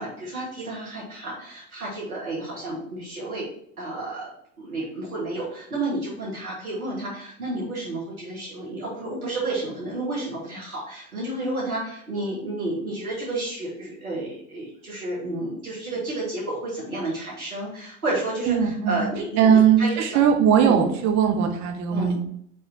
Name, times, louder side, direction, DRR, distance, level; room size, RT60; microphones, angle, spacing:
voice 1, 0.0-3.5 3.8-4.3 4.6-20.2 20.5-20.8 21.9-22.2, right 2 dB, 85° right, -6 dB, 2.6 m, -31 dB
voice 2, 18.5-19.0 19.4-22.2, right 7 dB, 40° right, 4 dB, 1.3 m, -19 dB
6.5 x 3.8 x 4.7 m, 0.68 s
figure-of-eight pair, 80°, 42 cm